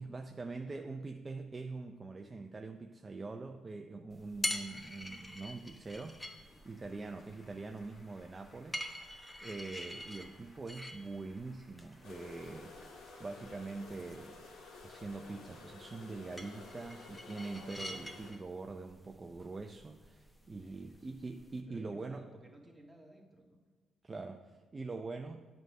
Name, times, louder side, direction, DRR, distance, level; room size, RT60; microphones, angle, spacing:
voice 1, 0.0-8.8 9.4-12.9 13.2-14.4 14.8-22.2 24.0-25.4, right 3 dB, 30° right, 4 dB, 0.5 m, -44 dB
sound 1, 4.1-21.6, left 1 dB, 10° left, 0.9 m, -46 dB
Applause / Crowd, 5.6-14.0, left 2 dB, 40° left, 2.1 m, -66 dB
sound 2, 12.0-18.3, left 3 dB, 75° left, 1.7 m, -52 dB
voice 2, 20.6-21.1 21.7-23.6, right 1 dB, 5° right, -1 dB, 1.8 m, -57 dB
8.9 x 4.8 x 6.5 m, 1.5 s
cardioid pair, 90°, 0 cm